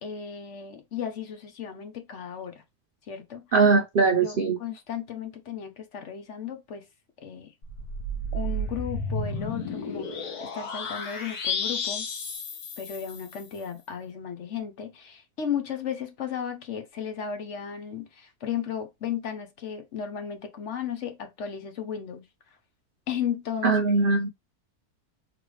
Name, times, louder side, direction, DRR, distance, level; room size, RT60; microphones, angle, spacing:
voice 1, 0.0-2.6 3.1-3.5 4.0-6.9 7.2-7.5 8.3-12.1 12.8-22.3 23.1-23.8 24.2-24.3, left 8 dB, 55° left, 1.0 m, -35 dB
voice 2, 3.5-4.6 23.6-24.3, right 4 dB, 65° right, 0.5 m, -21 dB
sound 1, 7.6-13.5, left 2 dB, 85° left, 1.5 m, -32 dB
3.9 x 3.2 x 3.1 m
omnidirectional pair, 1.6 m